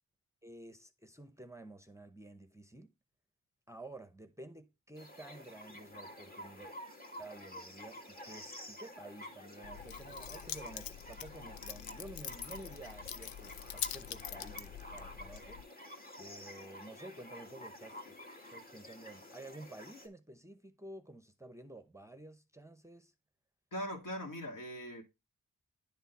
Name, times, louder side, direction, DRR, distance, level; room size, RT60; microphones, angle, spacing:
voice 1, 0.4-2.9 3.7-6.7 7.2-18.2 18.5-23.1, right 2 dB, 10° right, 0.8 m, -51 dB
sound 1, 4.9-20.1, left 1 dB, 25° left, 2.0 m, -50 dB
Keys jangling, 9.6-15.6, left 10 dB, 85° left, 0.5 m, -44 dB
voice 2, 23.7-25.0, equal, 65° left, 2.6 m, -40 dB
10.5 x 4.0 x 4.0 m
cardioid pair, 55°, 34 cm